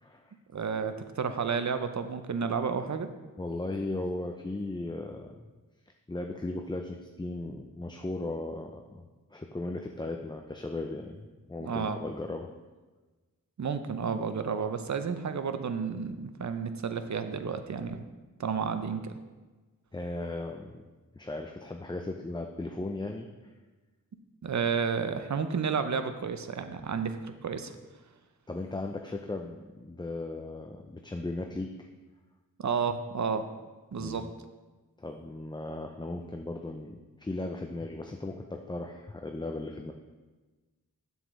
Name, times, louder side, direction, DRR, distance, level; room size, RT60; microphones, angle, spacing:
voice 1, 0.0-0.3 3.4-5.5 6.1-9.0 9.3-12.5 19.9-20.8 21.2-23.3 28.5-31.9 34.0-34.3 35.0-39.9, left 2 dB, 15° left, 3 dB, 0.5 m, -37 dB
voice 2, 0.5-3.1 11.6-12.0 13.6-18.0 18.4-19.1 24.4-27.7 32.6-33.5 33.9-34.3, right 6 dB, 55° right, 9 dB, 0.6 m, -31 dB
7.4 x 7.2 x 3.1 m, 1.3 s
wide cardioid pair, 55°, 34 cm